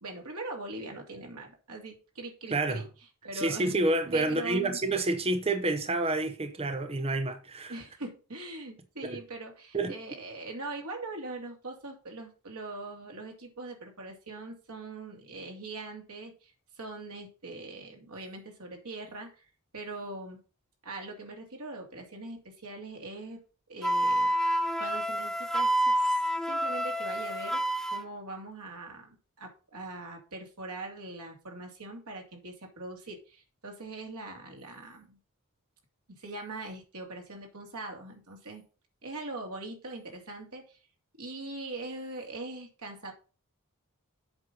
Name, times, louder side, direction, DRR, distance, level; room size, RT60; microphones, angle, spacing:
voice 1, 0.0-2.9 3.2-3.8 4.1-5.0 7.7-19.5 19.7-20.4 20.8-23.4 23.7-24.3 24.8-26.1 26.4-27.6 27.9-35.2 36.1-38.6 39.0-40.8 41.2-43.1, right 2 dB, 85° right, 2.7 m, -41 dB
voice 2, 2.5-2.8 3.3-7.8 9.0-9.2 9.7-9.9, right 2 dB, 25° right, 0.8 m, -29 dB
Wind instrument woodwind instrument, 23.8-28.0, right 1 dB, ahead, 0.4 m, -28 dB
7.9 x 5.5 x 5.4 m
head